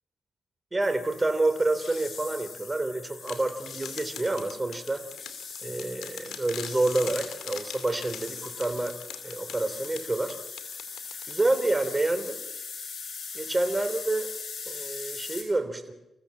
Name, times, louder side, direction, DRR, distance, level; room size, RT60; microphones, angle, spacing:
voice 1, 0.7-5.0 5.6-9.0 9.2-10.4 11.3-12.4 13.3-14.3 14.7-15.9, right 2 dB, 20° right, 9 dB, 3.2 m, -28 dB
sound 1, 0.8-15.4, left 5 dB, 60° left, 7.0 m, -41 dB
sound 2, 3.3-11.7, left 8 dB, 90° left, 2.6 m, -42 dB
28.0 x 15.0 x 7.4 m, 0.94 s
cardioid pair, 75°, 0 cm